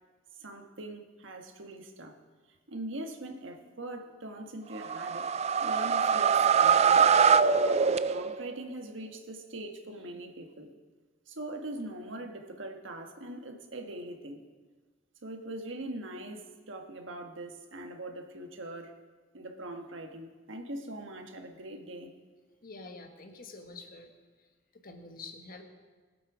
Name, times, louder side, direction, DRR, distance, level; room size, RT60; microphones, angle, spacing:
voice 1, 0.4-2.2 2.7-5.3 5.6-7.1 8.1-10.8 11.3-14.4 15.2-18.9 19.3-22.1, right 1 dB, 75° right, 4 dB, 1.5 m, -42 dB
sound 1, 4.8-8.5, right 6 dB, 35° right, 0.4 m, -23 dB
voice 2, 22.6-24.1 24.8-25.6, left 3 dB, 50° left, 4 dB, 1.3 m, -46 dB
21.0 x 7.9 x 4.9 m, 1.4 s
head